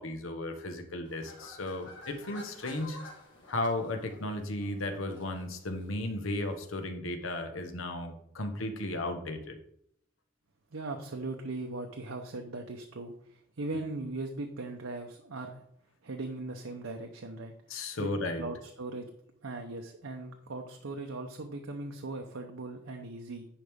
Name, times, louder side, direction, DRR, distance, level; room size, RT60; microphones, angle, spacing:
voice 1, 0.0-3.0 3.5-9.5 17.7-18.4, left 2 dB, 80° left, 6 dB, 1.1 m, -35 dB
sound 1, 1.0-6.8, left 2 dB, 65° left, 1.8 m, -52 dB
voice 2, 10.7-15.6 16.0-18.1 18.4-19.1 19.4-23.5, right 2 dB, 80° right, 3 dB, 0.8 m, -39 dB
10.0 x 5.0 x 3.5 m, 0.69 s
head